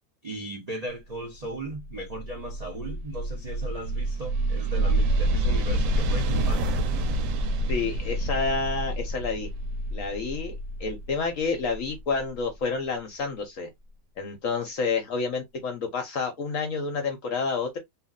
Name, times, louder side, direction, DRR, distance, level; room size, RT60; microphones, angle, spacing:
voice 1, 0.2-6.6, right 2 dB, 70° right, 0.3 m, -37 dB
sound 1, 1.6-12.4, right 1 dB, 85° right, 1.3 m, -28 dB
voice 2, 7.7-9.5 9.9-13.7 14.2-17.8, left 4 dB, 65° left, 0.8 m, -29 dB
2.8 x 2.5 x 2.4 m
omnidirectional pair, 1.9 m